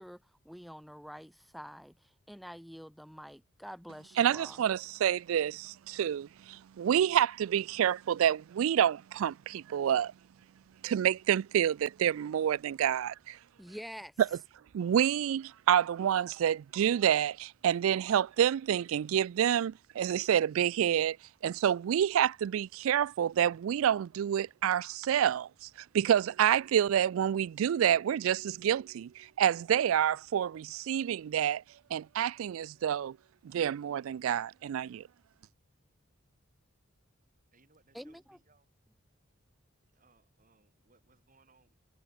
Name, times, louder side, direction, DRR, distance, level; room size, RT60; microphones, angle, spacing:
voice 1, 0.0-4.6 13.6-14.2 37.9-38.4, equal, ahead, 0.7 m, -47 dB
voice 2, 4.2-10.1 10.8-13.4 14.7-21.2 21.4-25.7 25.9-31.6 31.9-33.2 33.4-35.0, right 9 dB, 75° right, 0.3 m, -28 dB
voice 3, 37.5-38.7 39.9-41.7, right 3 dB, 40° right, 4.3 m, -67 dB
head